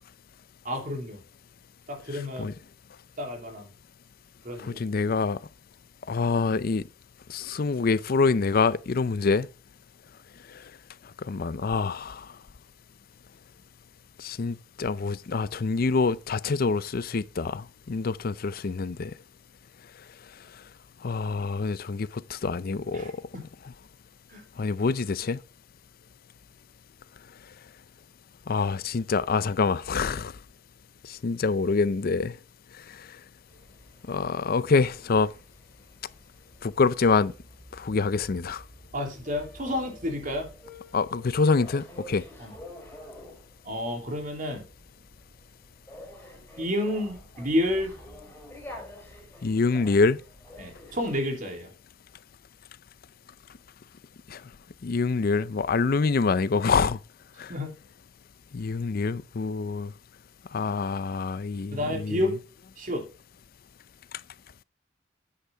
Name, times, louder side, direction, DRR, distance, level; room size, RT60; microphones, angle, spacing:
voice 1, 0.6-1.2 1.9-2.6 3.2-3.7 4.4-4.8 22.9-23.5 24.3-24.4 38.9-40.5 42.4-42.5 43.6-44.6 46.6-47.9 50.6-51.7 57.5-57.7 61.7-62.4 62.8-63.1, left 1 dB, 45° right, 3.1 m, -30 dB
voice 2, 4.6-5.4 6.1-6.9 7.3-9.5 11.3-12.3 14.2-19.1 21.0-23.1 24.6-25.4 28.5-30.3 31.1-32.4 34.1-35.3 36.6-37.3 37.7-38.6 40.9-42.2 49.4-50.2 54.3-54.4 54.8-57.0 57.4-57.5 58.5-59.9 60.5-62.2, left 4 dB, 55° left, 0.5 m, -26 dB
sound 1, 33.5-51.2, left 1 dB, 10° left, 4.2 m, -48 dB
9.9 x 8.3 x 3.5 m
head